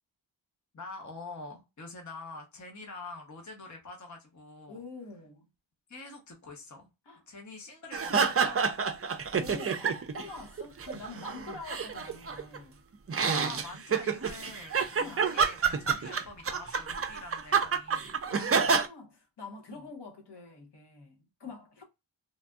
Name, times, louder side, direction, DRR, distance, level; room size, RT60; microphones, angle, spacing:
voice 1, 0.7-4.8 5.9-6.9 7.3-8.8 13.3-18.2 19.7-19.9 21.4-21.5, left 3 dB, 40° left, 0.8 m, -45 dB
voice 2, 4.7-5.4 7.1-7.2 9.4-12.8 15.0-15.4 18.3-21.8, left 4 dB, 60° left, 1.0 m, -46 dB
sound 1, 7.9-10.3 10.6-12.6 13.1-18.9, right 6 dB, 35° right, 0.4 m, -28 dB
3.3 x 2.6 x 2.2 m
wide cardioid pair, 90°, 45 cm